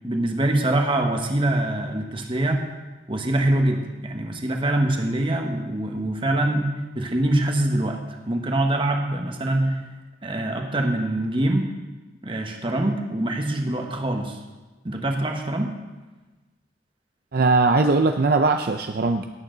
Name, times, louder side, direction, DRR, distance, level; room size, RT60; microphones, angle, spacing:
voice 1, 0.0-2.6 3.1-6.7 6.9-9.8 10.2-11.7 12.2-14.4 14.8-15.8, right 1 dB, 30° right, 3 dB, 1.3 m, -24 dB
voice 2, 17.3-19.3, right 3 dB, 55° right, 6 dB, 0.5 m, -20 dB
18.0 x 8.7 x 4.0 m, 1.2 s
head